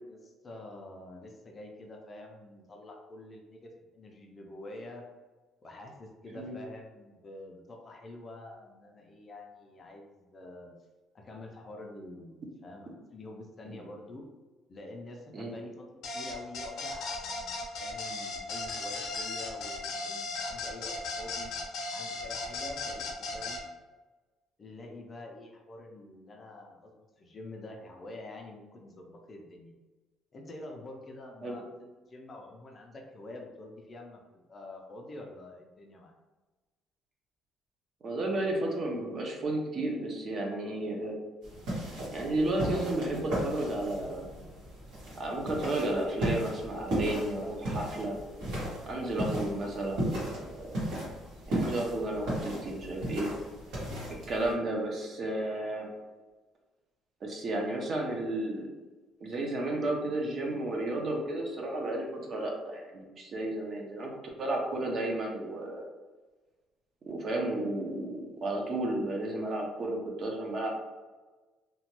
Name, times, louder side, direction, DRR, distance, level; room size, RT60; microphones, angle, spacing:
voice 1, 0.1-5.0 5.6-10.7 11.1-14.2 14.7-21.5 21.9-23.6 24.6-29.7 30.3-34.2 34.5-36.2, left 2 dB, 25° left, 1 dB, 0.4 m, -47 dB
sound 1, 16.0-23.6, left 3 dB, 65° left, 0.6 m, -36 dB
voice 2, 38.0-41.2 42.1-44.3 45.1-48.2 48.9-50.7 51.5-53.3 54.3-55.9 57.2-58.7 59.2-64.1 64.4-65.9 67.1-70.7, right 1 dB, 35° right, 1 dB, 0.6 m, -33 dB
sound 2, 41.4-54.5, right 1 dB, 75° right, 1.5 m, -35 dB
2.9 x 2.2 x 2.9 m, 1.2 s
cardioid pair, 160°, 0 cm